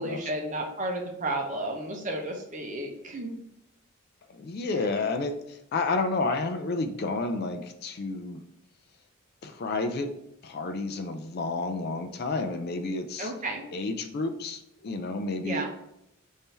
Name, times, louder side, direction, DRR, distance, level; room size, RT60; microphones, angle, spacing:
voice 1, 0.0-3.3 4.7-4.9 13.2-13.6 15.4-15.7, right 1 dB, 35° right, 2 dB, 0.7 m, -32 dB
voice 2, 4.3-8.4 9.4-10.2 10.4-13.3 13.7-15.7, left 3 dB, 45° left, 7 dB, 0.4 m, -30 dB
3.6 x 2.7 x 4.4 m, 0.81 s
head